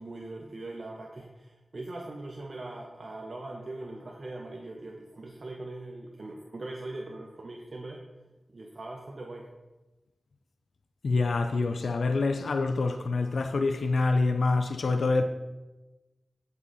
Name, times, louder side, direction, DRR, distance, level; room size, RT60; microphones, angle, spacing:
voice 1, 0.0-8.0 8.5-9.5, right 2 dB, 60° right, 1.0 m, -41 dB
voice 2, 11.0-15.2, left 3 dB, 85° left, 0.5 m, -26 dB
15.0 x 5.5 x 4.1 m
cardioid pair, 45°, 0 cm